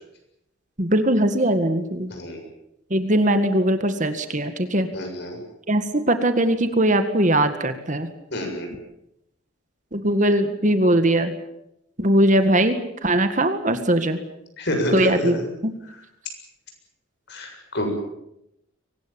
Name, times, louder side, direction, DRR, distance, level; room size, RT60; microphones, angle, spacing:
voice 1, 0.8-2.1 2.9-4.9 5.7-8.1 9.9-11.3 12.0-14.2 14.9-15.4 15.6-15.7, right 1 dB, 35° right, 9 dB, 1.8 m, -20 dB
voice 2, 2.1-2.4 4.9-5.4 8.3-8.7 14.6-15.4 17.3-17.9, equal, 55° left, 4 dB, 7.2 m, -28 dB
24.0 x 19.5 x 8.8 m, 0.84 s
head